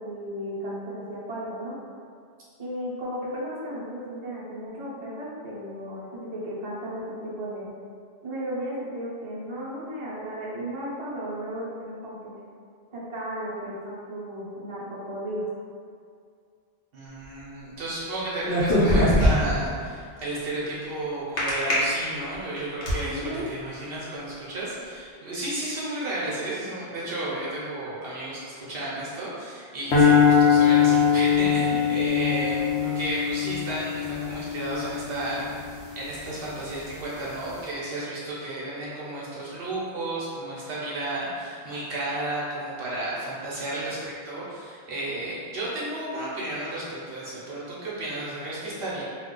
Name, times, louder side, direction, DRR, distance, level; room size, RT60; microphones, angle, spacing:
voice 1, 0.0-1.7 2.6-7.7 8.2-12.3 12.9-15.5 23.0-23.5, equal, 35° right, -8 dB, 0.6 m, -34 dB
voice 2, 16.9-35.4 36.0-49.0, right 1 dB, 65° right, -7 dB, 0.8 m, -33 dB
sound 1, 18.4-19.7 21.4-21.7 22.3-23.0, equal, 60° left, 1.0 m, -20 dB
sound 2, 29.9-36.2, left 7 dB, 85° left, 0.8 m, -22 dB
2.4 x 2.3 x 3.7 m, 2.2 s
omnidirectional pair, 1.1 m